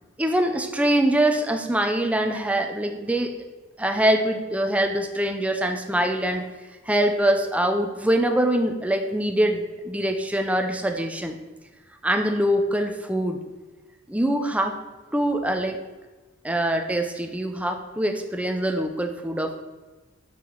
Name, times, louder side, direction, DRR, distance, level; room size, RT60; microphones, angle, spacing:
voice 1, 0.2-3.3 3.8-6.5 6.9-11.4 12.0-13.4 14.1-14.8 15.1-15.8 16.4-19.6, right 1 dB, 5° right, 4 dB, 0.6 m, -24 dB
6.0 x 5.9 x 3.8 m, 1.2 s
head